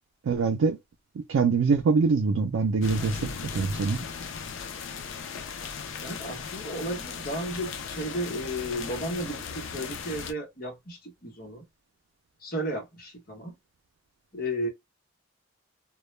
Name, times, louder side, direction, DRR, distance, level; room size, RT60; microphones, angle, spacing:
voice 1, 0.2-0.8 1.2-4.0, right 4 dB, 85° right, 0.4 m, -24 dB
sound 1, 2.8-10.3, left 6 dB, 65° left, 0.4 m, -37 dB
voice 2, 5.9-11.6 12.4-13.5 14.3-14.7, equal, 45° left, 0.9 m, -34 dB
2.2 x 2.1 x 3.0 m
head